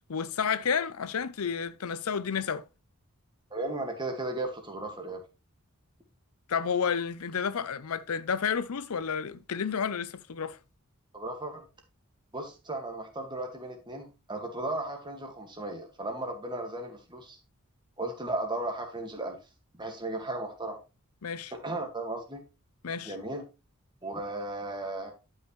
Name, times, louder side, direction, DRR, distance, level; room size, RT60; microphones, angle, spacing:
voice 1, 0.1-2.6 6.5-10.6 21.2-21.5 22.8-23.1, left 6 dB, 85° left, 0.6 m, -31 dB
voice 2, 3.5-5.2 11.1-11.7 12.3-17.4 18.0-19.4 19.8-20.8 21.5-22.4 23.0-23.4 24.0-25.1, right 2 dB, 20° right, 1.9 m, -35 dB
11.5 x 5.6 x 3.2 m
head